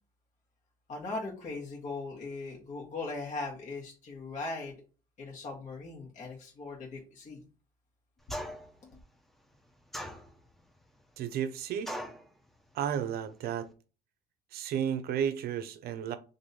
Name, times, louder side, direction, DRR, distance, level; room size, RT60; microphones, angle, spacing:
voice 1, 0.9-4.7 5.2-7.4, left 3 dB, 45° left, 1.3 m, -39 dB
sound 1, 8.3-8.8 9.9-10.6 11.9-12.3, equal, ahead, 0.6 m, -39 dB
voice 2, 11.2-12.0 12.7-13.7 14.5-16.2, right 9 dB, 65° right, 0.6 m, -32 dB
3.1 x 2.6 x 4.1 m
cardioid pair, 110°, 17 cm